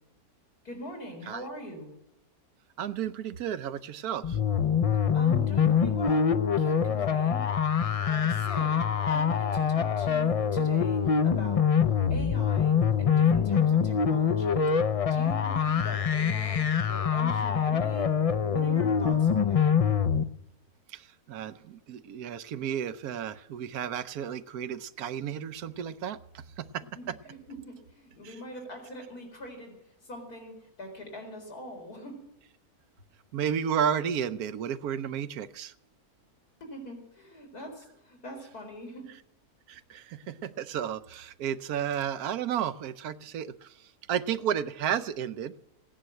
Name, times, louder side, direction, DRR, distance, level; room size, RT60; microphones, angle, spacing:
voice 1, 0.6-1.9 5.1-7.4 8.0-11.7 12.1-14.7 15.0-18.1 18.4-19.7 27.0-29.8 30.1-32.1 36.6-39.0, equal, 85° left, 2 dB, 4.9 m, -42 dB
voice 2, 2.8-4.4 20.9-27.1 28.2-28.3 33.3-35.7 39.7-45.5, right 8 dB, 80° right, 13 dB, 1.2 m, -33 dB
sound 1, 4.2-20.2, left 7 dB, 65° left, 0.3 m, -25 dB
17.0 x 10.0 x 7.8 m, 0.84 s
omnidirectional pair, 1.6 m